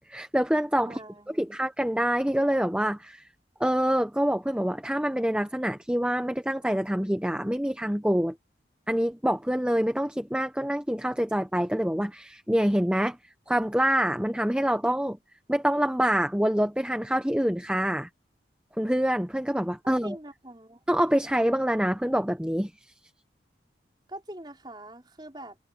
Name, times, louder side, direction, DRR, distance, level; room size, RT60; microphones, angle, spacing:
voice 1, 0.1-1.0 1.4-3.2 3.6-8.3 8.9-13.2 13.5-15.2 15.5-18.1 18.8-20.2 20.9-22.7, equal, 5° right, 0.8 m, -26 dB
voice 2, 0.8-1.5 19.8-20.8 24.1-25.6, right 1 dB, 25° right, 4.8 m, -43 dB
head